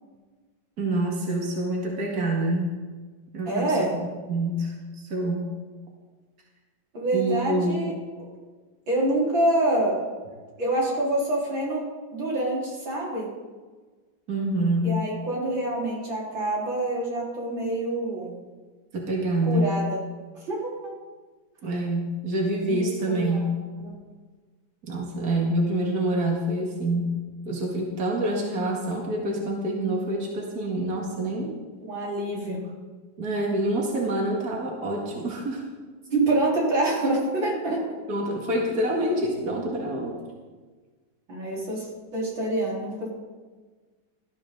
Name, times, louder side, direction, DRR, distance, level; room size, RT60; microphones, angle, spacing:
voice 1, 0.8-2.8 3.3-3.9 4.3-5.4 7.1-7.9 14.3-15.0 18.9-19.7 21.6-23.5 24.9-27.1 27.5-31.5 33.2-35.6 38.1-40.2, right 1 dB, 50° right, -1 dB, 2.6 m, -26 dB
voice 2, 3.5-3.9 6.9-7.9 8.9-10.0 10.6-11.8 12.1-13.3 14.8-18.3 19.4-20.0 20.5-20.9 22.6-23.5 23.8-23.9 31.8-32.6 36.1-37.8 38.9-39.1 41.3-41.9 42.1-43.1, right 1 dB, 90° right, -5 dB, 5.0 m, -26 dB
18.5 x 13.0 x 3.9 m, 1.4 s
omnidirectional pair, 2.0 m